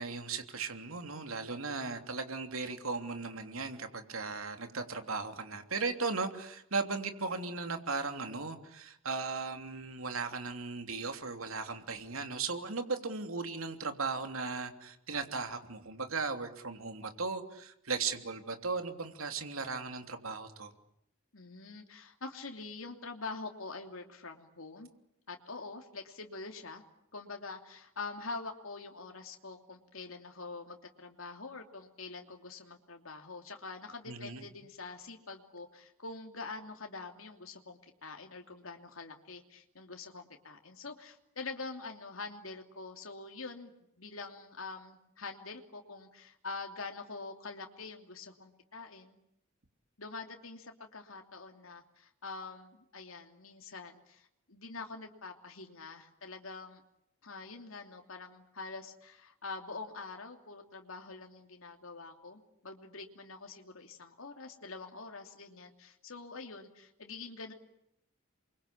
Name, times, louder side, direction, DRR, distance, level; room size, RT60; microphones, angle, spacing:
voice 1, 0.0-20.7 34.1-34.5, right 4 dB, 85° right, 6 dB, 3.1 m, -37 dB
voice 2, 21.3-24.9 25.3-26.8 27.1-43.7 44.0-49.2 50.0-56.8 57.2-67.5, left 3 dB, 75° left, 3 dB, 3.0 m, -45 dB
29.0 x 24.0 x 8.6 m, 0.78 s
head